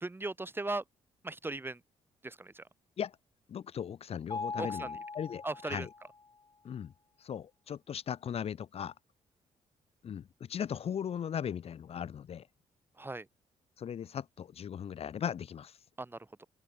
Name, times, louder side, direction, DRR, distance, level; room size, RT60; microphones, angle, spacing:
voice 1, 0.0-0.8 1.2-1.8 2.2-2.6 4.6-5.0 5.4-5.9 13.0-13.3 16.0-16.5, right 2 dB, 15° right, 2.4 m, -38 dB
voice 2, 3.5-4.9 5.1-5.9 6.6-6.9 7.2-8.9 10.0-12.5 13.8-15.8, left 8 dB, 55° left, 0.8 m, -38 dB
Mallet percussion, 4.3-6.3, left 4 dB, 30° left, 4.4 m, -40 dB
open air
cardioid pair, 80°, 13 cm